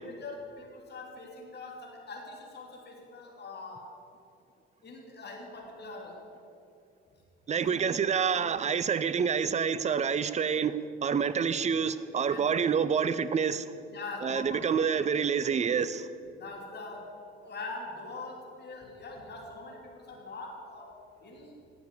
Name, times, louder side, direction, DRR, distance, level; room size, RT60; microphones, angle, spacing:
voice 1, 0.0-4.0 4.8-6.3 7.5-7.9 8.3-8.6 12.3-12.9 13.9-15.1 16.4-17.2 17.4-21.6, left 3 dB, 35° left, 2.9 m, -43 dB
voice 2, 7.5-13.7 14.2-16.1, right 6 dB, 25° right, 0.6 m, -28 dB
18.5 x 7.1 x 6.5 m
figure-of-eight pair, 55°, 30 cm